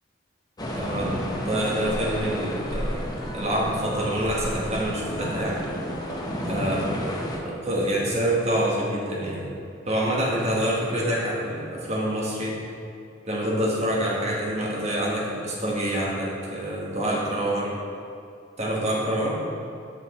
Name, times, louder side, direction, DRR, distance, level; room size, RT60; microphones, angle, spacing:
sound 1, 0.6-7.4, equal, 20° left, 0.7 m, -31 dB
voice 1, 0.8-1.2 1.4-3.0 3.3-5.7 6.5-7.0 7.4-9.5 9.8-12.6 13.2-17.8 18.6-19.4, right 1 dB, 35° right, -5 dB, 1.4 m, -26 dB
6.6 x 5.9 x 4.2 m, 2.5 s
head